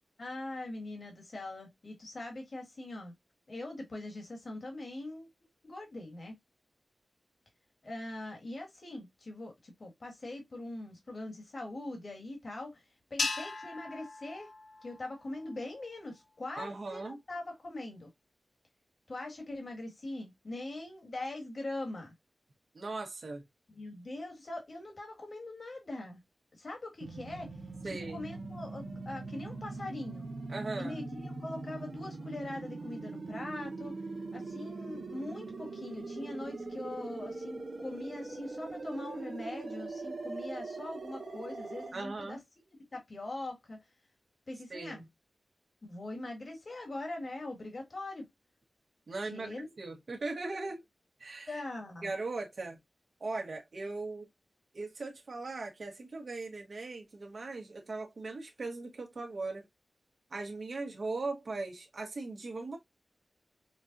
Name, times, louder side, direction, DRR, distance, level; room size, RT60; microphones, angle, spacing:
voice 1, 0.2-3.1 3.5-5.3 5.6-6.3 7.8-12.8 13.1-14.5 14.8-18.1 19.1-22.1 23.7-26.2 26.5-27.6 27.8-30.3 30.8-34.0 34.3-42.4 42.9-43.8 44.5-45.0 45.8-48.3 49.2-49.7 51.5-52.1, left 2 dB, 50° left, 1.8 m, -42 dB
sound 1, 13.2-15.6, left 4 dB, 80° left, 0.7 m, -38 dB
voice 2, 16.6-17.2 22.7-23.4 27.8-28.2 30.5-31.0 41.9-42.4 44.7-45.0 49.1-49.5 49.8-50.8 51.2-51.5 52.0-52.8 53.2-54.3 54.7-59.7 60.3-62.8, right 3 dB, 60° right, 1.2 m, -39 dB
sound 2, 27.0-41.9, right 3 dB, 90° right, 0.9 m, -41 dB
5.2 x 2.4 x 2.5 m
wide cardioid pair, 115°, 0 cm